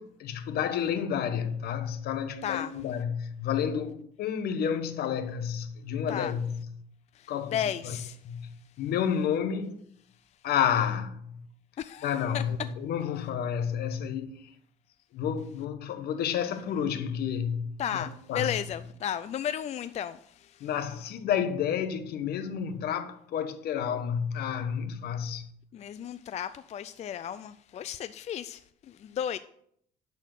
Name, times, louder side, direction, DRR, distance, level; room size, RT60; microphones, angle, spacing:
voice 1, 0.0-6.7 7.3-8.0 8.2-9.8 10.4-11.4 12.0-14.5 15.1-18.6 20.6-25.5, left 8 dB, 70° left, 1.0 m, -30 dB
voice 2, 2.4-2.7 6.1-6.3 7.2-8.2 11.8-12.4 17.8-20.7 25.7-28.6 28.9-29.4, left 9 dB, 40° left, 0.4 m, -34 dB
10.5 x 4.2 x 6.5 m
cardioid pair, 110°, 17 cm